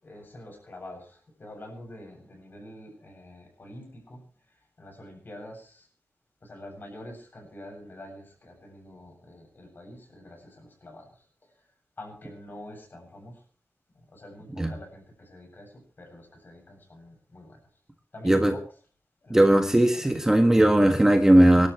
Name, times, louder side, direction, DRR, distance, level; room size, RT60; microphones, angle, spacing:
voice 1, 0.0-5.9 6.4-11.3 12.0-13.4 14.1-17.6 18.1-18.6 19.2-20.1, left 1 dB, 45° left, 2 dB, 7.7 m, -46 dB
voice 2, 19.3-21.7, right 1 dB, 10° right, 5 dB, 1.5 m, -18 dB
26.5 x 12.0 x 3.2 m, 0.40 s
wide cardioid pair, 130°, 5 cm